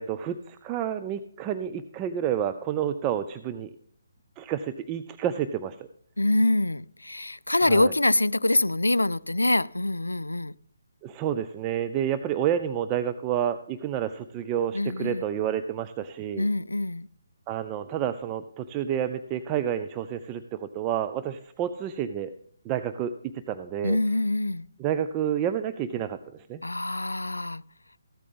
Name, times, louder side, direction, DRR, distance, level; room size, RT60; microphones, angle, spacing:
voice 1, 0.0-3.7 4.4-5.8 7.6-7.9 11.0-16.5 17.5-22.3 22.6-23.1 23.5-24.0 24.8-26.6, right 9 dB, 20° right, 0.4 m, -29 dB
voice 2, 6.2-10.6 14.7-15.2 16.4-17.1 23.8-24.7 26.6-27.6, left 2 dB, 85° left, 0.3 m, -25 dB
14.5 x 8.4 x 3.5 m
figure-of-eight pair, 145°, 0 cm